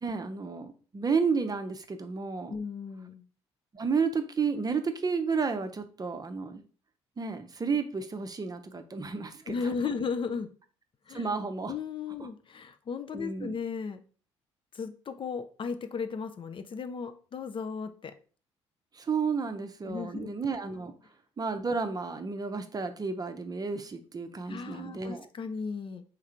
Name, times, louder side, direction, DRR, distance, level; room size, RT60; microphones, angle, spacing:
voice 1, 0.0-2.6 3.7-6.6 7.2-9.5 11.1-11.7 12.2-12.3 13.1-13.5 18.9-20.9 21.4-25.3, right 5 dB, 25° right, 8 dB, 0.7 m, -32 dB
voice 2, 2.5-3.3 9.5-10.5 11.1-11.3 11.7-14.0 14.7-18.1 19.8-20.3 24.5-26.0, left 5 dB, 35° left, 9 dB, 0.5 m, -35 dB
3.7 x 3.2 x 4.5 m, 0.40 s
figure-of-eight pair, 50°, 15 cm